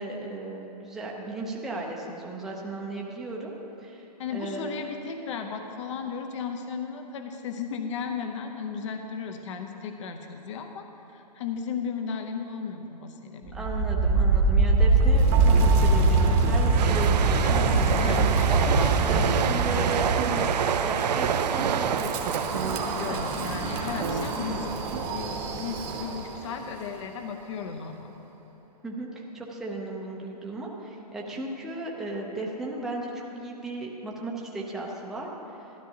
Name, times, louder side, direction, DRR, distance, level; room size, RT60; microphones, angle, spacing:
voice 1, 0.0-3.5 3.8-4.8 13.5-18.0 18.3-20.5 20.8-23.2 24.4-24.6 28.8-35.3 35.6-35.7, right 2 dB, ahead, -3 dB, 0.6 m, -35 dB
voice 2, 4.2-10.9 11.1-13.7 17.4-18.8 23.0-24.7 25.0-28.1, left 6 dB, 45° left, 5 dB, 0.8 m, -35 dB
Wind, 13.5-26.5, right 3 dB, 25° right, 0.9 m, -24 dB
sound 1, 16.7-24.2 24.5-24.8, right 8 dB, 80° right, 0.4 m, -28 dB
sound 2, 19.3-19.5 19.8-19.9 20.2-20.4 21.0-21.1 21.6-21.8 22.2-22.3 22.5-22.8 23.4-23.5 24.0-24.3 24.9-25.0, right 6 dB, 65° right, 0.8 m, -33 dB
12.5 x 12.0 x 2.8 m, 2.9 s
hypercardioid pair, 150°, 21 cm